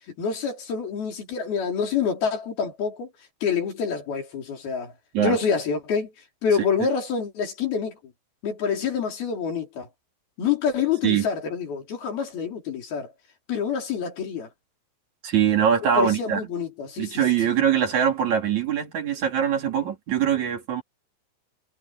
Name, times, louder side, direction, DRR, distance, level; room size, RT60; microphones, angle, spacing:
voice 1, 0.2-3.1 3.4-4.9 5.2-6.1 6.4-8.0 8.4-9.9 10.4-13.1 13.5-14.5 16.0-17.2, left 6 dB, 50° left, 5.8 m, -27 dB
voice 2, 15.2-16.5 17.0-20.8, right 8 dB, 40° right, 4.0 m, -22 dB
omnidirectional pair, 5.7 m